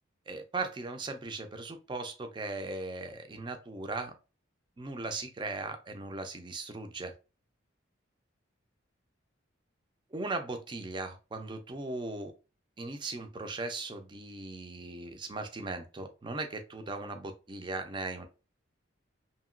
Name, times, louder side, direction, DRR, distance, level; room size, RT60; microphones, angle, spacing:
voice 1, 0.3-4.1 4.8-7.1 10.1-12.3 12.8-18.3, right 3 dB, 25° right, 6 dB, 0.4 m, -38 dB
2.8 x 2.7 x 2.5 m, 0.31 s
head